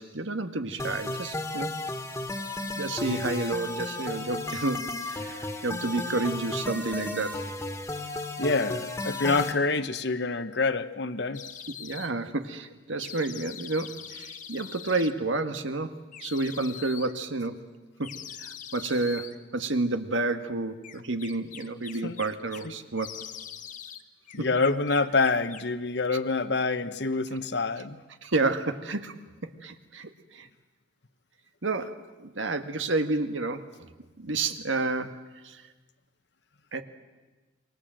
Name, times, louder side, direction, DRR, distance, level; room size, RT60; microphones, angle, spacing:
voice 1, 0.0-1.8 2.8-7.4 11.8-17.7 18.0-23.1 24.4-24.5 28.2-29.2 29.6-30.5 31.6-33.7 34.2-35.2 35.4-35.6 36.7-36.8, right 2 dB, 85° right, 8 dB, 1.7 m, -30 dB
sound 1, 0.8-9.5, left 2 dB, 15° left, 1.9 m, -34 dB
voice 2, 8.4-11.4 22.0-22.2 22.6-22.7 24.3-28.0, left 3 dB, 60° left, 12 dB, 1.1 m, -27 dB
sound 2, 11.3-12.1 13.0-15.1 16.1-17.1 18.0-19.4 20.8-22.7 23.0-24.0 24.3-25.7, left 8 dB, 40° left, 1.2 m, -43 dB
28.0 x 23.0 x 7.7 m, 1.2 s
head